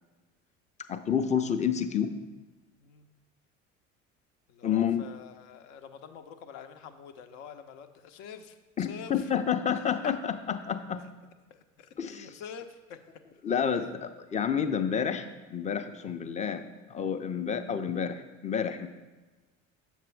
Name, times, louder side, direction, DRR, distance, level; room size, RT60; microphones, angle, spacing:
voice 1, 0.9-2.1 4.6-5.0 8.8-11.0 12.0-12.3 13.4-13.8 14.3-16.6 16.9-18.9, left 7 dB, 20° left, 9 dB, 0.5 m, -29 dB
voice 2, 4.5-9.3 9.8-10.2 11.5-13.2 13.7-14.0, left 7 dB, 60° left, 8 dB, 0.7 m, -46 dB
7.0 x 6.6 x 3.2 m, 1.2 s
figure-of-eight pair, 65°, 38 cm